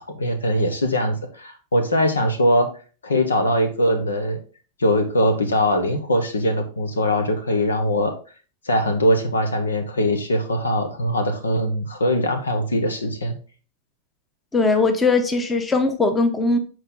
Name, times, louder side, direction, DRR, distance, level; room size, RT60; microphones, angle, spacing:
voice 1, 0.1-2.7 3.0-4.4 4.8-8.1 8.6-13.4, equal, 80° left, 7 dB, 1.2 m, -21 dB
voice 2, 14.5-16.6, left 3 dB, 15° left, 7 dB, 1.1 m, -19 dB
7.9 x 4.7 x 3.8 m, 0.37 s
figure-of-eight pair, 95°, 0 cm